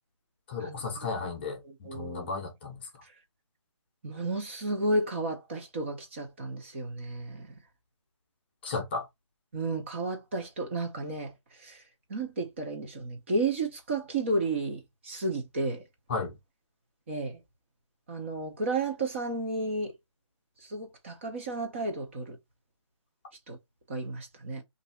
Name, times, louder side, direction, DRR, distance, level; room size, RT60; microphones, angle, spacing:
voice 1, 0.5-1.6 1.9-2.8 8.6-9.1 16.1-16.3, left 4 dB, 20° left, 0.7 m, -34 dB
voice 2, 1.6-2.3 3.0-3.1 4.0-7.5 9.5-11.8 12.1-15.8 17.1-17.4 18.1-19.9 20.6-22.4 23.5-23.6 23.9-24.6, right 2 dB, 25° right, 0.7 m, -32 dB
2.9 x 2.6 x 4.2 m
hypercardioid pair, 170°, 15 cm